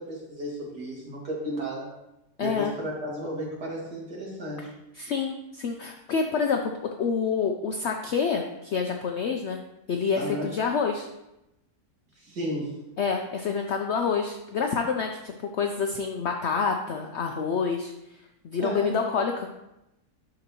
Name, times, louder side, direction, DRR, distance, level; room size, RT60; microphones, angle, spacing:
voice 1, 0.0-1.9 2.4-4.7 10.1-10.5 12.2-12.7 18.6-19.0, equal, 75° right, -5 dB, 2.6 m, -33 dB
voice 2, 2.4-2.7 5.0-6.6 7.0-9.6 9.9-11.1 13.0-17.9 18.4-19.5, left 5 dB, 75° left, 3 dB, 0.6 m, -27 dB
11.5 x 3.8 x 2.9 m, 0.91 s
omnidirectional pair, 1.7 m